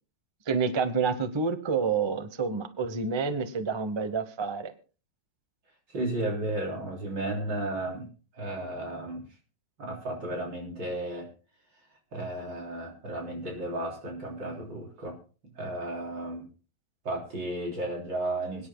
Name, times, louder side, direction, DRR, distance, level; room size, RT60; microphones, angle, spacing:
voice 1, 0.5-4.7, right 5 dB, 30° right, 11 dB, 0.5 m, -28 dB
voice 2, 5.9-8.1 8.3-9.2 9.8-11.3 12.1-15.2 15.6-16.5 17.0-18.7, right 1 dB, 70° right, 0 dB, 4.2 m, -33 dB
26.0 x 10.0 x 2.2 m, 0.36 s
omnidirectional pair, 2.0 m